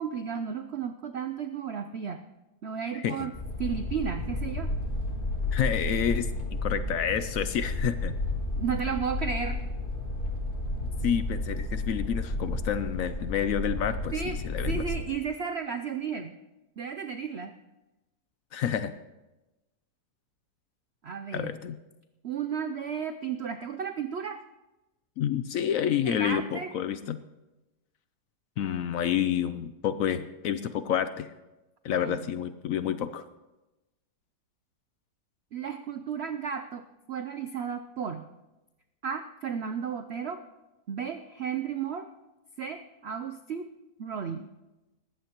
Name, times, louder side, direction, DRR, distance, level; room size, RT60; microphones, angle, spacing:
voice 1, 0.0-2.2 2.6-3.3 3.6-4.7 8.6-9.6 14.1-14.4 14.7-16.3 16.8-17.5 21.0-21.6 22.2-24.4 26.0-26.7 31.9-32.3 35.5-38.3 39.0-40.4 40.9-42.1 42.6-43.7 44.0-44.5, right 7 dB, 70° right, 7 dB, 0.6 m, -33 dB
sound 1, 3.3-15.1, left 2 dB, 30° left, 1.8 m, -32 dB
voice 2, 5.5-8.1 11.0-14.1 14.4-14.8 18.5-18.9 21.3-21.8 25.2-27.2 28.6-31.3 31.8-33.2, left 9 dB, 70° left, 12 dB, 0.8 m, -29 dB
20.0 x 15.0 x 3.0 m, 1.0 s
omnidirectional pair, 1.8 m